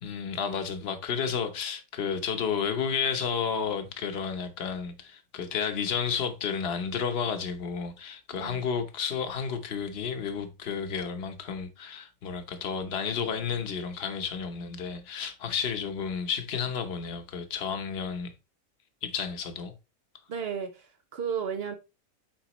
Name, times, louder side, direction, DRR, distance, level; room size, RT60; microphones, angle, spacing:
voice 1, 0.0-18.3 19.0-19.7, left 6 dB, 45° left, 1.0 m, -31 dB
voice 2, 8.3-8.7 20.3-21.7, right 7 dB, 75° right, 0.5 m, -34 dB
9.0 x 4.0 x 3.0 m
omnidirectional pair, 1.9 m